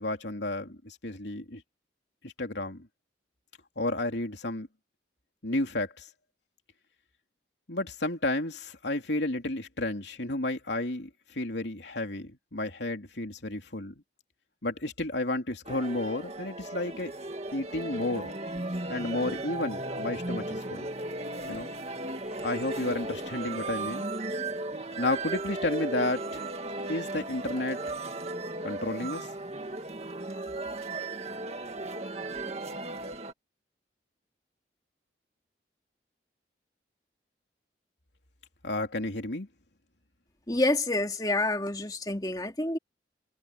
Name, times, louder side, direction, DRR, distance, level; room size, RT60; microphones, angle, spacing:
voice 1, 0.0-1.6 2.2-2.9 3.8-4.7 5.4-6.1 7.7-13.9 14.6-17.1 17.5-18.3 18.9-20.9 21.5-21.7 22.4-24.1 25.0-26.4 26.9-27.8 28.6-29.3 38.6-39.5, left 2 dB, 75° left, 3.1 m, -32 dB
sound 1, 15.7-33.3, right 2 dB, 35° right, 2.2 m, -36 dB
voice 2, 40.5-42.8, left 2 dB, 20° left, 2.5 m, -28 dB
head